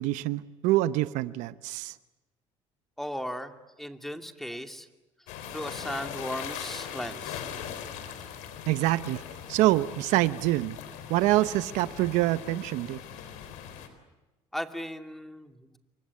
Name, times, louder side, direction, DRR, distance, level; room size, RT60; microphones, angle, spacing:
voice 1, 0.0-1.9 8.7-9.2 9.5-10.8 11.1-13.0, right 16 dB, 80° right, 14 dB, 0.9 m, -25 dB
voice 2, 3.0-4.9 5.5-7.4 14.5-15.8, equal, ahead, 6 dB, 2.5 m, -37 dB
sound 1, 5.3-13.9, left 9 dB, 85° left, 4.0 m, -40 dB
28.5 x 24.0 x 8.5 m, 1.1 s
supercardioid pair, 85°, 12 cm